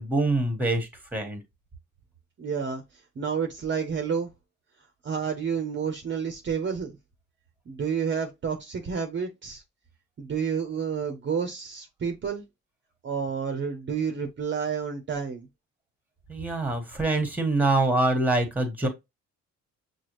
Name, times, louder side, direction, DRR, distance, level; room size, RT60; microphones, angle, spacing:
voice 1, 0.0-1.4 16.3-18.9, right 2 dB, 5° right, 1.4 m, -25 dB
voice 2, 2.4-2.8 3.2-4.3 5.0-6.9 7.7-9.6 10.2-12.4 13.0-15.5, right 6 dB, 40° right, 0.8 m, -30 dB
6.1 x 2.3 x 3.1 m
cardioid pair, 90°, 30 cm